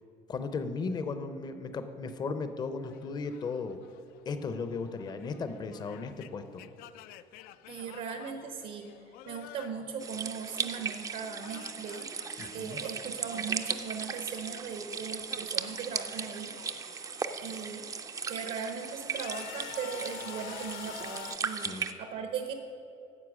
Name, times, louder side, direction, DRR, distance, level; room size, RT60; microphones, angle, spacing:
voice 1, 0.3-3.8 4.3-6.6 12.4-12.8 21.6-21.9, left 4 dB, 30° left, 9 dB, 0.6 m, -36 dB
sound 1, 2.8-10.9 11.1-14.9 15.1-17.8 18.3-21.4, left 13 dB, 85° left, 0.4 m, -50 dB
voice 2, 7.7-8.9 9.2-12.1 12.5-16.5 17.4-17.9 18.3-22.5, right 6 dB, 70° right, 5 dB, 0.9 m, -38 dB
sound 2, 10.0-21.9, right 6 dB, 20° right, 0.4 m, -37 dB
9.7 x 7.7 x 6.2 m, 2.6 s
cardioid pair, 150°, 15 cm